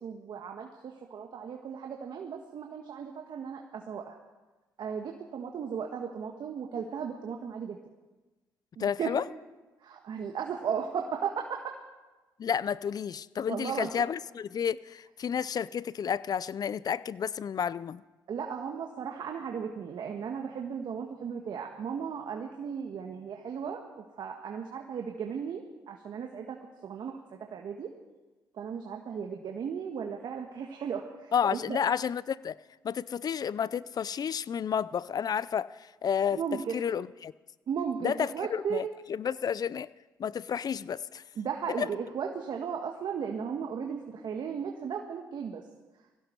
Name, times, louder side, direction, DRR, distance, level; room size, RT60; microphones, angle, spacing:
voice 1, 0.0-4.2 4.8-7.8 8.8-9.1 9.8-11.7 13.5-13.9 18.3-26.6 26.8-27.1 27.5-27.9 28.5-31.8 36.3-36.8 37.7-38.8 41.4-45.6, right 7 dB, 65° right, 1.6 m, -36 dB
voice 2, 8.8-9.2 12.4-18.0 31.3-32.6 32.8-36.4 36.7-37.3 38.0-39.9 40.2-41.2 41.8-41.9, left 7 dB, 55° left, 0.5 m, -31 dB
19.5 x 16.0 x 4.7 m
supercardioid pair, 55°, 8 cm